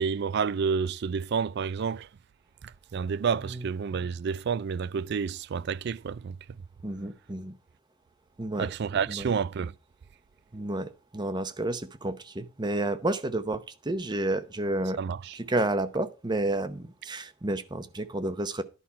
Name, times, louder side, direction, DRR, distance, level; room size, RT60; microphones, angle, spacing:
voice 1, 0.0-2.1 2.6-6.4 8.6-9.7 15.0-15.4, right 6 dB, 55° right, 0.4 m, -29 dB
voice 2, 6.8-7.5 8.4-8.7 9.1-9.3 10.5-15.0 15.3-18.6, right 2 dB, 20° right, 0.7 m, -30 dB
11.0 x 5.7 x 4.6 m
head